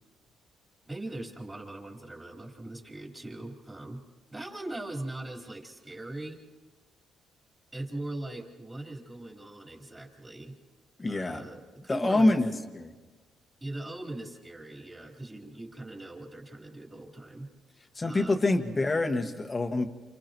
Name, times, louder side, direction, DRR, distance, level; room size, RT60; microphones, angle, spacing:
voice 1, 0.9-4.0 4.3-6.4 7.7-10.5 11.1-12.4 13.6-17.5 18.0-18.4, right 2 dB, 15° right, -1 dB, 4.2 m, -40 dB
voice 2, 11.0-11.5 11.9-12.9 18.0-19.8, left 2 dB, 25° left, 5 dB, 1.8 m, -26 dB
29.0 x 28.5 x 3.1 m, 1.3 s
cardioid pair, 90°, 0 cm